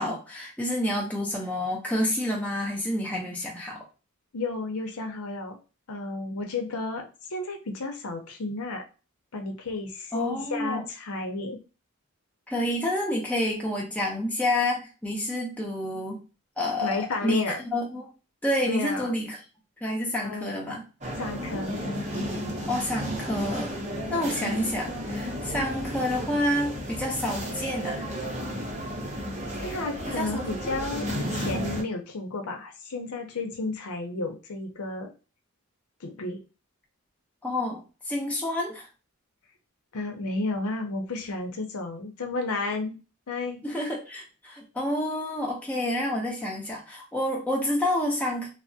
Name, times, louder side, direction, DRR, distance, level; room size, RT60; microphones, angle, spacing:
voice 1, 0.0-3.8 10.1-10.8 12.5-16.2 16.6-18.1 18.4-19.4 19.8-20.8 22.7-23.8 24.1-28.0 30.2-30.8 37.4-37.8 38.1-38.9 43.6-48.5, left 1 dB, 5° left, -2 dB, 0.6 m, -29 dB
voice 2, 4.3-5.6 5.9-8.8 9.3-11.6 16.8-17.6 18.7-19.2 20.2-20.8 21.2-21.8 29.6-35.1 36.0-36.4 39.9-43.0 43.3-43.6, left 3 dB, 85° left, 4 dB, 0.6 m, -32 dB
sound 1, 21.0-31.8, equal, 30° right, 0.7 m, -33 dB
3.3 x 2.0 x 2.6 m, 0.32 s
head